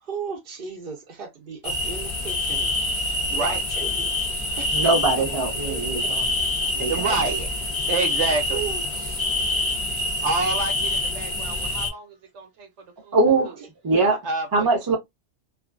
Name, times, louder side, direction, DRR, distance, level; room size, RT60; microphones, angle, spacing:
voice 1, 0.0-2.7 3.3-4.1 4.6-5.2 5.7-6.1 8.5-9.3, right 5 dB, 55° right, 0.8 m, -36 dB
sound 1, 1.6-11.9, left 2 dB, 30° left, 0.6 m, -26 dB
voice 2, 3.3-3.6 6.9-7.5 7.9-8.7 9.9-12.7 13.0-13.2 13.4-13.5 14.0-14.7, right 3 dB, 75° right, 1.1 m, -28 dB
voice 3, 4.7-6.3 6.8-7.0 13.1-13.5 13.8-14.2 14.5-15.0, right 3 dB, 20° right, 0.7 m, -21 dB
2.6 x 2.3 x 2.4 m
omnidirectional pair, 1.2 m